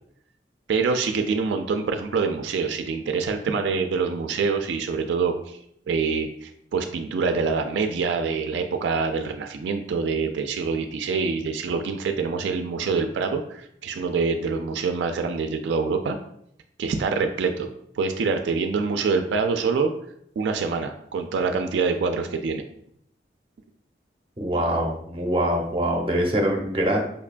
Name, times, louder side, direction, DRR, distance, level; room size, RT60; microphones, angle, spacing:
voice 1, 0.7-5.6 5.9-16.2 16.8-19.9 20.4-22.6, right 4 dB, 80° right, 6 dB, 0.3 m, -25 dB
voice 2, 24.4-27.0, right 1 dB, 30° right, 1 dB, 0.6 m, -24 dB
5.3 x 2.2 x 2.4 m, 0.71 s
head